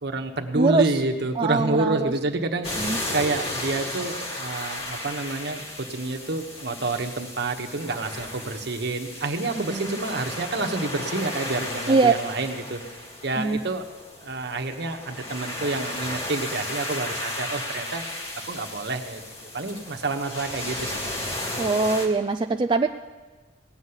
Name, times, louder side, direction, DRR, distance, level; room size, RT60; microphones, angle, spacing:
voice 1, 0.0-12.8 13.2-13.8 14.2-18.0 18.4-19.2 19.5-20.9, right 2 dB, 60° right, 4 dB, 1.3 m, -28 dB
voice 2, 0.5-0.9 1.4-2.1 2.8-3.0 9.6-10.0 11.9-12.1 13.4-13.6 21.6-22.9, right 3 dB, 25° right, 5 dB, 0.4 m, -22 dB
sound 1, 2.6-22.1, left 1 dB, 35° left, 2.1 m, -34 dB
17.5 x 7.3 x 9.8 m, 1.3 s
head